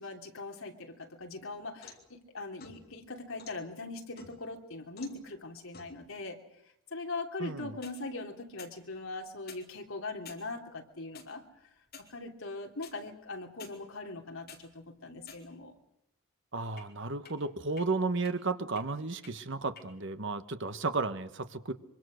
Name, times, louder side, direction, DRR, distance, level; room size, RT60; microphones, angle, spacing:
voice 1, 0.0-6.4 6.9-11.4 12.1-15.7, left 3 dB, 65° left, 2 dB, 3.1 m, -41 dB
sound 1, 1.2-2.1 2.6-3.6 4.2-4.6 5.0-5.2 5.7-6.0 7.6-8.0 8.6-8.8 9.4-9.7 10.3-10.4 11.1-11.3 11.9-12.1 12.8-12.9 13.6-13.7 14.2-14.6 15.2-15.7 16.8-16.9 17.3-17.4 17.8-17.9 18.2-18.3 18.8-18.9 19.2-19.3 19.8-19.9, left 5 dB, 45° left, 3.8 m, -50 dB
voice 2, 7.4-7.8 16.5-21.7, right 3 dB, 55° right, 10 dB, 1.3 m, -33 dB
24.5 x 24.5 x 6.5 m, 0.81 s
head